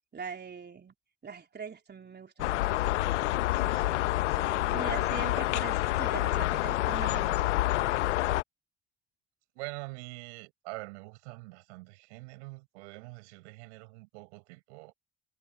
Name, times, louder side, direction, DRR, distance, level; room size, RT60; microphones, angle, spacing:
voice 1, 0.1-0.9 1.2-2.8 4.7-7.6, right 6 dB, 25° right, 3.5 m, -41 dB
sound 1, 2.4-8.4, left 16 dB, 70° left, 1.1 m, -28 dB
voice 2, 3.5-5.3 9.5-14.9, right 26 dB, 65° right, 5.1 m, -45 dB
figure-of-eight pair, 50°, 37 cm